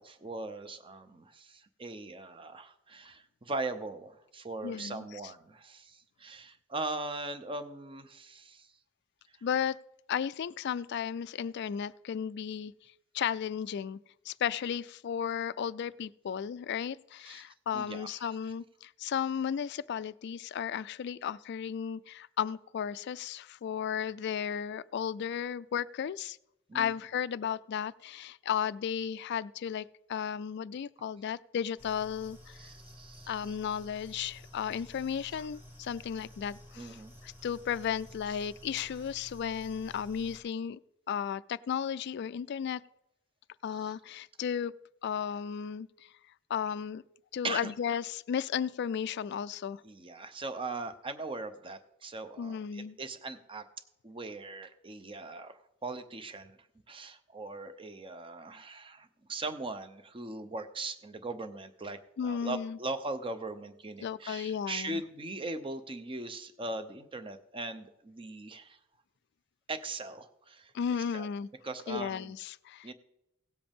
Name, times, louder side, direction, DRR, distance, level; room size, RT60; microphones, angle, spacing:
voice 1, 0.0-8.7 17.3-17.4 17.7-18.3 26.7-26.9 32.6-33.6 35.3-35.5 36.8-37.1 43.8-43.9 47.4-47.7 49.8-53.7 54.0-56.6 56.9-68.8 69.7-70.7 71.1-71.3 71.6-72.3 72.8-72.9, right 2 dB, 25° right, 0.7 m, -40 dB
voice 2, 4.6-5.0 9.4-9.8 10.1-12.7 13.1-14.0 14.3-26.4 26.7-32.6 33.3-37.0 37.2-40.8 41.1-42.8 43.6-44.7 45.0-45.9 46.5-47.0 47.3-49.8 52.4-53.0 62.2-62.8 64.0-65.0 70.7-71.5 71.9-72.9, left 8 dB, 55° left, 0.3 m, -34 dB
sound 1, 31.8-40.4, left 1 dB, 10° right, 2.1 m, -52 dB
17.5 x 7.7 x 3.6 m
head